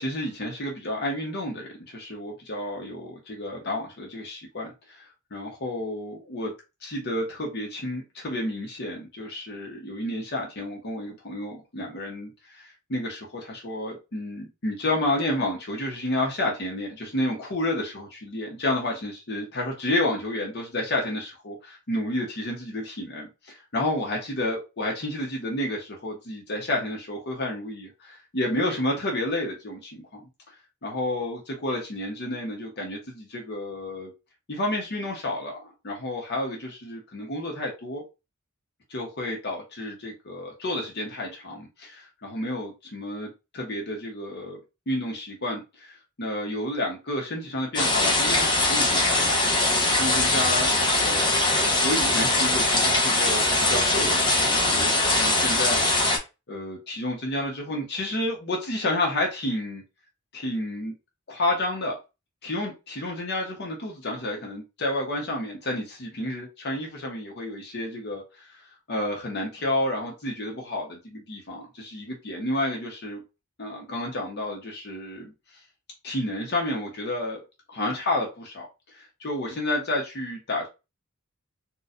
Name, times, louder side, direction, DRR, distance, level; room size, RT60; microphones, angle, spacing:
voice 1, 0.0-6.5 6.8-30.5 30.8-34.1 34.5-38.0 38.9-44.6 44.9-50.7 51.0-56.0 56.5-59.8 60.3-60.9 61.3-62.0 62.4-73.2 73.6-75.6 76.0-77.4 77.7-78.7 78.9-80.7, left 1 dB, 50° left, 0.9 m, -30 dB
sound 1, 47.7-56.2, left 2 dB, 20° left, 0.8 m, -22 dB
4.1 x 2.3 x 2.5 m
head